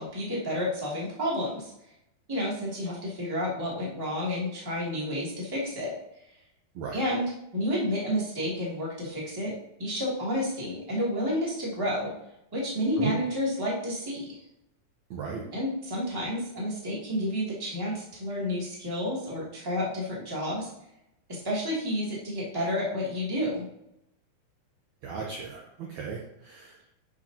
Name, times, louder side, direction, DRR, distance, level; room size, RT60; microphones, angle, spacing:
voice 1, 0.0-1.7 2.3-6.0 6.9-9.5 9.8-12.1 12.5-14.2 15.5-20.7 21.3-23.6, equal, 10° right, -6 dB, 1.7 m, -30 dB
voice 2, 15.1-15.4 25.0-26.9, right 6 dB, 70° right, -2 dB, 1.9 m, -36 dB
12.0 x 5.7 x 2.8 m, 0.81 s
omnidirectional pair, 4.3 m